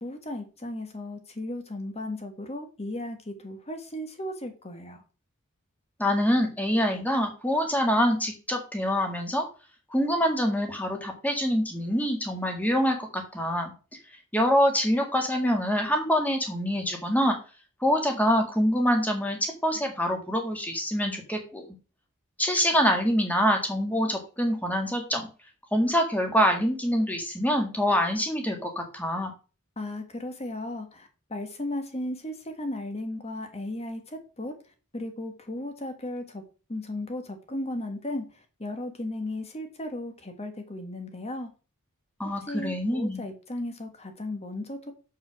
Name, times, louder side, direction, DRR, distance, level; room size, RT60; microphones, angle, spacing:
voice 1, 0.0-5.0 29.8-34.5 34.9-36.4 36.7-41.5 42.2-44.9, left 1 dB, 30° left, 6 dB, 1.5 m, -35 dB
voice 2, 6.0-9.5 9.9-13.7 14.3-17.4 17.8-21.7 22.4-25.3 25.7-29.3 42.2-43.2, equal, 5° left, 3 dB, 1.9 m, -25 dB
6.9 x 5.5 x 6.1 m, 0.34 s
head